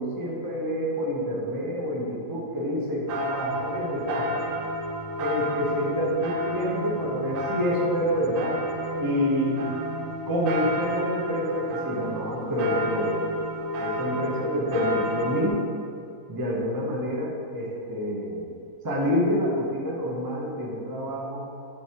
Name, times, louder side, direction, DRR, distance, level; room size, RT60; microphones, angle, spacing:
voice 1, 0.0-4.4 5.2-8.6 9.0-9.7 10.3-13.2 13.8-15.6 16.3-18.5 18.8-21.4, equal, 25° right, -3 dB, 0.4 m, -27 dB
sound 1, 3.1-15.5, equal, 85° right, 1.4 m, -31 dB
9.2 x 3.8 x 2.9 m, 2.5 s
omnidirectional pair, 2.0 m